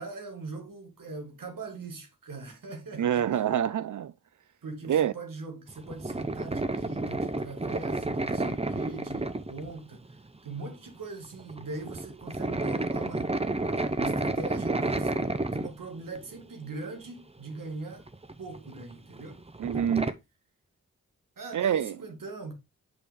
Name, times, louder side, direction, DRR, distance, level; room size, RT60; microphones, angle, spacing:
voice 1, 0.0-3.4 4.6-13.4 14.0-18.1 18.4-19.4 21.4-22.5, right 3 dB, 90° right, 1.8 m, -41 dB
voice 2, 3.0-4.1 4.9-5.1 19.6-20.1 21.5-22.0, right 9 dB, 70° right, 0.5 m, -26 dB
sound 1, 5.7-10.5 10.7-11.0 11.2-16.4 16.8-16.9 17.9-20.1, right 2 dB, 20° right, 0.8 m, -31 dB
6.0 x 5.0 x 3.5 m
cardioid pair, 50°, 32 cm